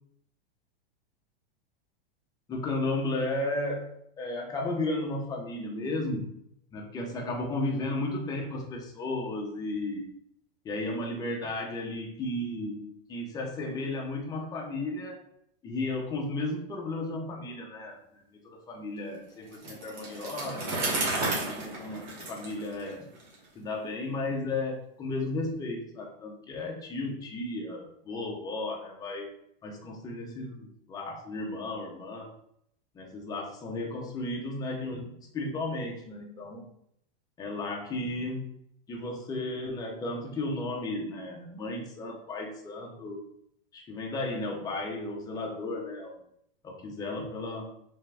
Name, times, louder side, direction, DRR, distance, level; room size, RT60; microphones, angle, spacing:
voice 1, 2.5-6.3 6.7-10.1 10.6-15.2 15.6-20.9 21.5-23.1 23.5-29.3 29.6-32.3 32.9-36.7 37.4-38.5 38.9-43.2 43.7-46.2 46.6-47.7, left 2 dB, 10° left, 0 dB, 0.6 m, -34 dB
Bicycle, 19.5-23.3, right 2 dB, 45° right, 1.4 m, -33 dB
3.5 x 3.4 x 3.3 m, 0.70 s
supercardioid pair, 155°, 30 cm